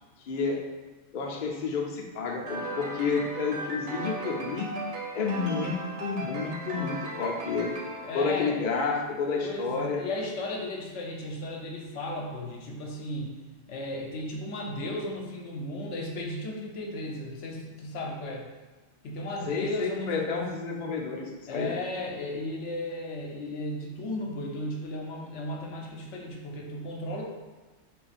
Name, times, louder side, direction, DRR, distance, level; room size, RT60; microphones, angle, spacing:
voice 1, 0.3-0.6 1.1-4.7 5.1-7.8 8.1-10.0 19.5-21.7, left 4 dB, 55° left, -1 dB, 0.6 m, -30 dB
sound 1, 2.5-9.1, right 1 dB, 75° right, 1.0 m, -37 dB
voice 2, 8.0-8.5 9.4-13.4 13.7-18.5 19.0-20.5 21.5-27.2, left 1 dB, 80° left, -1 dB, 1.0 m, -35 dB
3.6 x 2.4 x 4.0 m, 1.2 s
omnidirectional pair, 1.2 m